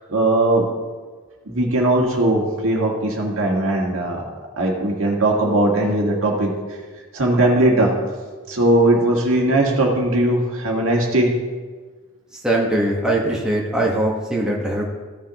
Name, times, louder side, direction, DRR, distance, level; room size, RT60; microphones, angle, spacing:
voice 1, 0.1-0.6 1.4-4.2 4.6-6.5 7.1-7.9 8.5-11.3, right 1 dB, 65° right, -1 dB, 1.8 m, -19 dB
voice 2, 12.4-14.9, right 1 dB, 5° right, -4 dB, 1.3 m, -21 dB
15.0 x 6.9 x 3.0 m, 1.4 s
head